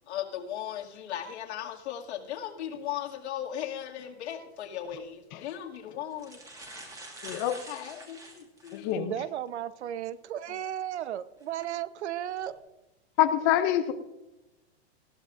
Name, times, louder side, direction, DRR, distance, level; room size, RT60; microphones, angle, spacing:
voice 1, 0.1-6.4 7.7-9.1, left 10 dB, 75° left, 1 dB, 2.3 m, -37 dB
sound 1, 4.7-4.9 5.8-5.9 6.1-8.9 9.5-9.6 11.4-11.6 12.2-12.5, right 2 dB, 10° right, 1.7 m, -46 dB
voice 2, 7.2-7.6 8.7-9.1 13.2-13.9, left 11 dB, 20° left, 10 dB, 0.4 m, -25 dB
voice 3, 8.9-12.5, right 11 dB, 75° right, 14 dB, 0.9 m, -34 dB
19.5 x 14.5 x 2.6 m, 0.98 s
supercardioid pair, 165°, 34 cm